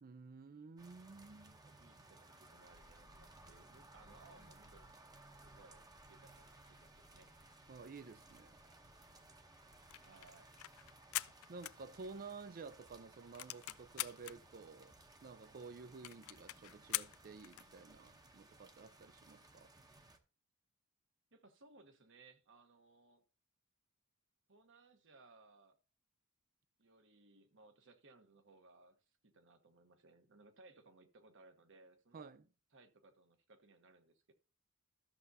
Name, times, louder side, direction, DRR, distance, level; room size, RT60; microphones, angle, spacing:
voice 1, 0.0-1.6 7.7-8.6 11.5-14.9 15.2-19.7 32.1-32.5, right 4 dB, 40° right, 0.5 m, -52 dB
sound 1, 0.8-20.2, right 2 dB, 20° right, 0.9 m, -61 dB
voice 2, 1.6-7.3 10.0-10.5 21.3-23.2 24.5-25.8 26.8-29.0 29.2-32.3 32.7-34.3, right 3 dB, 60° right, 1.2 m, -64 dB
sound 2, 2.7-11.1, left 1 dB, 20° left, 0.9 m, -69 dB
sound 3, 9.7-12.4 12.8-12.9 13.1-14.4 15.0-15.1 15.2-15.3 15.6-15.7 16.0-17.7, left 17 dB, 75° left, 0.3 m, -43 dB
13.0 x 6.7 x 2.7 m
head